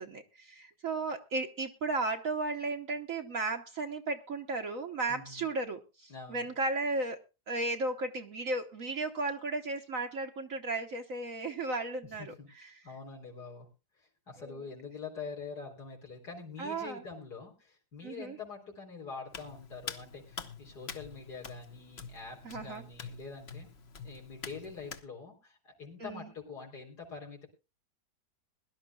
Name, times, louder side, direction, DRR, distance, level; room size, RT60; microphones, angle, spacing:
voice 1, 0.0-7.2 7.5-12.3 16.6-17.0 18.0-18.4 22.4-22.8 26.0-26.3, right 3 dB, 55° right, 4 dB, 1.4 m, -35 dB
voice 2, 5.1-5.5 6.1-6.5 12.0-13.7 14.0-23.7 24.0-27.5, left 4 dB, 70° left, -1 dB, 4.4 m, -45 dB
Hands, 19.3-25.0, left 5 dB, 45° left, 1.3 m, -46 dB
21.5 x 12.5 x 2.3 m, 0.29 s
omnidirectional pair, 1.8 m